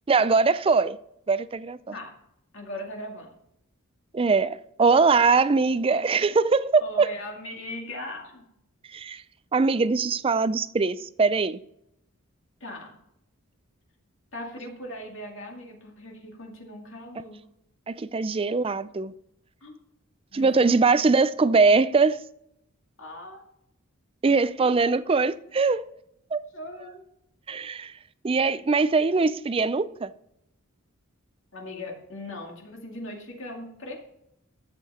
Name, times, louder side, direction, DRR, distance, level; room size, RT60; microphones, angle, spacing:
voice 1, 0.1-1.0 1.3-1.9 4.1-7.1 8.9-9.2 9.5-11.6 17.9-19.1 20.3-22.2 24.2-25.8 26.3-26.4 27.5-27.9 28.2-30.1, right 4 dB, 25° right, 0.4 m, -22 dB
voice 2, 2.5-3.3 6.8-8.5 12.6-13.0 14.3-17.4 19.6-19.8 20.3-20.7 23.0-23.4 24.6-24.7 26.5-27.0 31.5-33.9, left 1 dB, 60° left, 2.3 m, -39 dB
13.0 x 7.7 x 4.2 m
head